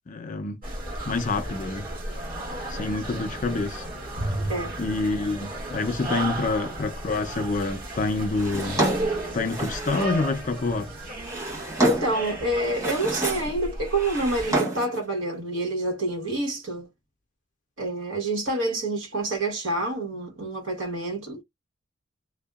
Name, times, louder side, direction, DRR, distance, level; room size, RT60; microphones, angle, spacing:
voice 1, 0.1-0.6 1.0-1.9 2.7-3.8 4.8-8.8 9.3-10.9, left 3 dB, 40° left, 0.4 m, -27 dB
sound 1, 0.6-14.5, right 1 dB, 45° right, 1.4 m, -34 dB
Drawer open or close, 8.3-10.2 11.0-12.2 12.6-13.6 13.8-15.0, right 1 dB, 15° right, 1.1 m, -28 dB
voice 2, 11.8-16.9 17.8-21.4, right 2 dB, 85° right, 1.2 m, -27 dB
2.6 x 2.1 x 2.3 m
head